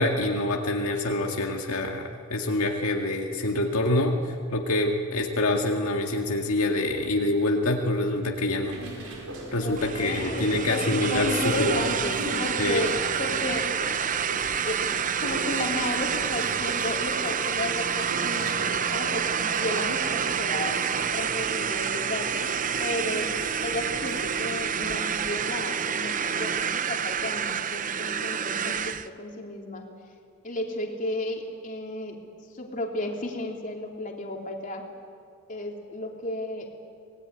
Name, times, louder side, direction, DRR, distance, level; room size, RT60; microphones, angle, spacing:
voice 1, 0.0-8.8 9.5-11.8 12.6-12.8, left 2 dB, 75° left, 1 dB, 2.0 m, -26 dB
sound 1, 8.6-24.5, right 1 dB, 75° right, 5.5 m, -38 dB
voice 2, 9.6-13.7 14.6-14.8 15.2-18.6 18.9-22.5 22.8-23.3 23.6-29.8 30.4-32.2 32.5-34.8 35.5-36.7, left 1 dB, 35° left, 1 dB, 3.3 m, -33 dB
sound 2, 9.8-29.1, right 7 dB, 40° right, 0.7 m, -28 dB
25.5 x 20.0 x 9.6 m, 2.3 s
head